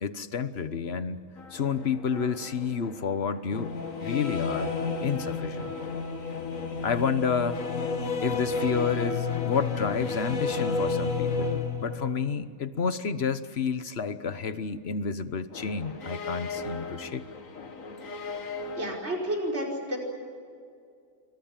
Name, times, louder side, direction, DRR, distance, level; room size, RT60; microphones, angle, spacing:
voice 1, 0.0-1.2 1.5-3.7 4.0-4.7 5.0-5.7 6.8-7.6 8.2-17.3, left 6 dB, 50° left, 12 dB, 1.2 m, -30 dB
sound 1, 1.4-12.3 15.5-18.9, left 4 dB, 65° left, 2.1 m, -32 dB
voice 2, 18.7-20.0, right 1 dB, 45° right, -1 dB, 5.4 m, -30 dB
28.0 x 24.5 x 7.4 m, 2.3 s
omnidirectional pair, 1.5 m